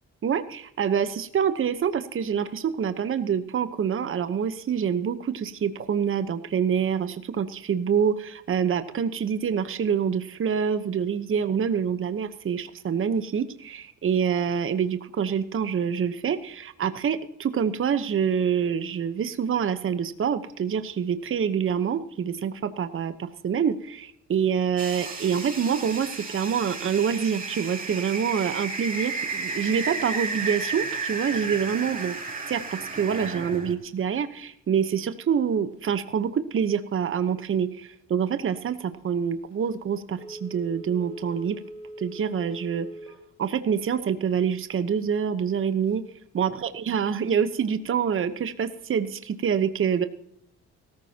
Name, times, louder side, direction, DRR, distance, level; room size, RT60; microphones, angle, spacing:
voice 1, 0.2-32.2 32.5-41.6 42.0-42.9 43.4-46.0 46.3-50.0, right 7 dB, 45° right, 11 dB, 1.0 m, -26 dB
sound 1, 24.8-33.7, right 4 dB, 30° right, 3.8 m, -33 dB
Telephone, 40.2-43.2 43.6-43.7, right 1 dB, 85° left, 4.7 m, -41 dB
17.0 x 14.5 x 2.9 m, 0.76 s
cardioid pair, 90°, 30 cm